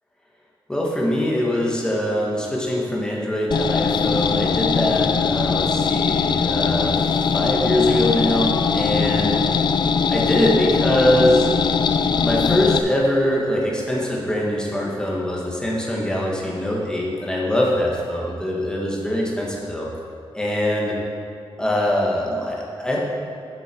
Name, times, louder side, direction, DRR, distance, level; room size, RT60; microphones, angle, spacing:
voice 1, 0.7-9.4 10.1-11.5 12.2-19.9 20.3-21.0 21.6-23.0, left 1 dB, 10° left, -4 dB, 1.6 m, -23 dB
sound 1, 3.5-12.8, left 6 dB, 50° left, 0.4 m, -21 dB
10.5 x 6.8 x 4.5 m, 2.4 s
wide cardioid pair, 145°, 10 cm